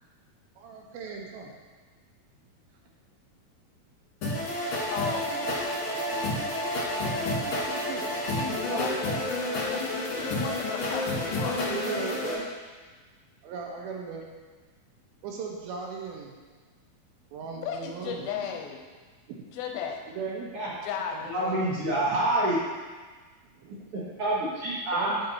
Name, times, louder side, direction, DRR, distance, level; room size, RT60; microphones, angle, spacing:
voice 1, 0.6-1.5 7.6-8.1 8.5-9.0 10.1-10.2 11.7-12.5 13.4-14.2 15.2-16.3 17.3-18.5 20.2-20.5 21.1-21.6 23.5-23.8 24.9-25.2, right 5 dB, 75° right, 0 dB, 2.8 m, -37 dB
sound 1, 4.2-12.3, left 1 dB, 45° left, 1.9 m, -30 dB
voice 2, 4.9-5.3 6.9-7.5 8.3-9.3 9.6-11.7 17.6-18.8 19.5-20.1 20.8-21.4, left 7 dB, 85° left, 3 dB, 2.5 m, -35 dB
voice 3, 21.3-22.6 23.7-25.2, right 1 dB, 50° right, -7 dB, 2.0 m, -27 dB
7.9 x 6.8 x 4.3 m, 1.4 s
omnidirectional pair, 4.5 m